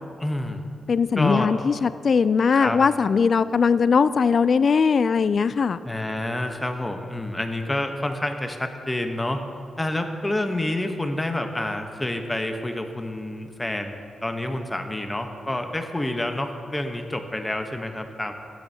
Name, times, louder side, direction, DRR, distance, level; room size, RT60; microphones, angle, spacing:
voice 1, 0.2-0.6 1.2-1.5 2.5-2.8 5.8-9.4 9.8-18.3, left 1 dB, 15° left, 5 dB, 1.0 m, -28 dB
voice 2, 0.9-5.8, left 5 dB, 55° left, 15 dB, 0.3 m, -20 dB
15.0 x 10.5 x 2.8 m, 2.3 s
cardioid pair, 75°, 0 cm